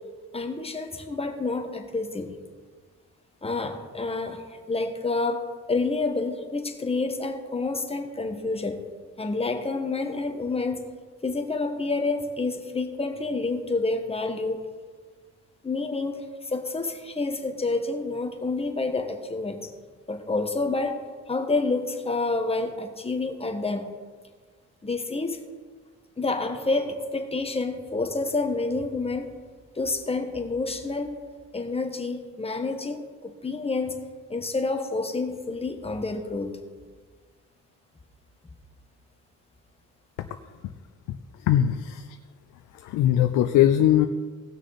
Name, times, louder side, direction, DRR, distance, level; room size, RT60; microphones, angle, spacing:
voice 1, 0.3-2.4 3.4-5.4 5.7-8.8 9.2-10.8 11.2-14.6 15.6-19.7 20.1-21.0 21.3-23.9 24.8-25.4 26.2-29.3 29.7-31.2 31.5-34.0 34.3-36.6, left 3 dB, 20° left, 5 dB, 1.4 m, -28 dB
voice 2, 41.5-42.2 42.8-44.1, left 11 dB, 85° left, 8 dB, 0.6 m, -20 dB
18.5 x 6.3 x 4.2 m, 1.5 s
cardioid pair, 90°, 30 cm